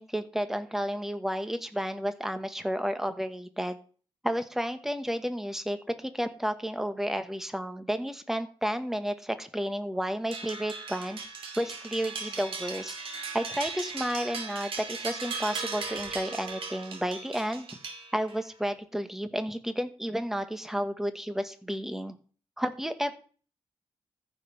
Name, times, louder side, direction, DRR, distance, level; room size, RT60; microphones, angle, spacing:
voice 1, 0.0-3.8 4.2-11.2 11.6-13.0 13.3-17.7 18.1-22.2 22.6-23.2, equal, 5° right, 9 dB, 1.2 m, -32 dB
sound 1, 10.3-18.5, right 4 dB, 75° right, 2.4 m, -38 dB
14.0 x 5.3 x 5.7 m, 0.40 s
wide cardioid pair, 120°, 9 cm